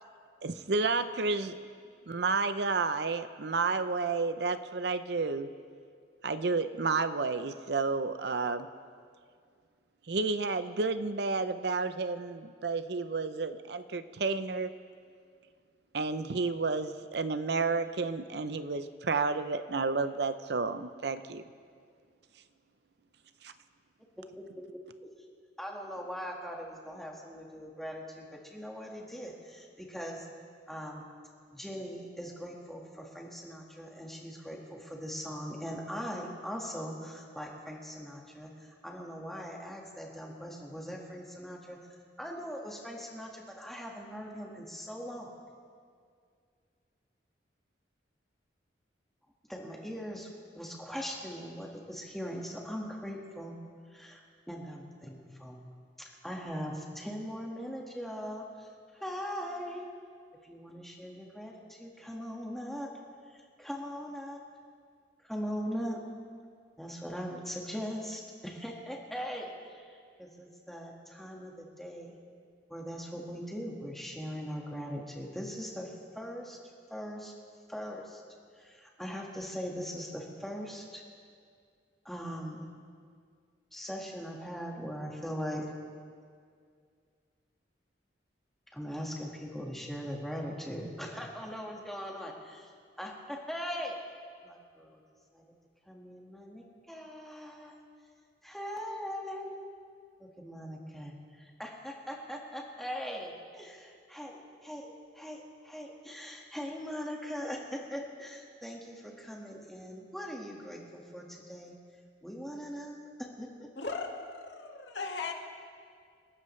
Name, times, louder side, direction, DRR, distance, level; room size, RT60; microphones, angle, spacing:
voice 1, 0.4-1.6 2.1-5.5 6.2-8.7 10.0-14.7 15.9-21.5 23.4-23.5, right 4 dB, 65° right, 0.6 m, -31 dB
voice 2, 24.0-24.4 24.7-24.8 25.6-30.3 30.7-31.0 31.5-41.8 42.2-45.3 49.5-50.3 50.6-53.6 53.9-55.6 56.0-59.9 60.4-62.9 63.3-64.4 65.2-66.0 66.8-72.2 72.7-76.6 76.9-77.3 77.7-78.2 78.6-81.0 82.1-82.6 83.7-85.7 88.7-92.7 93.0-94.0 94.4-95.0 95.3-95.4 95.9-97.8 98.4-99.7 100.2-111.8 112.2-113.7, equal, ahead, 1.7 m, -40 dB
voice 3, 113.8-115.3, left 4 dB, 70° left, 1.9 m, -37 dB
29.0 x 13.0 x 3.3 m
head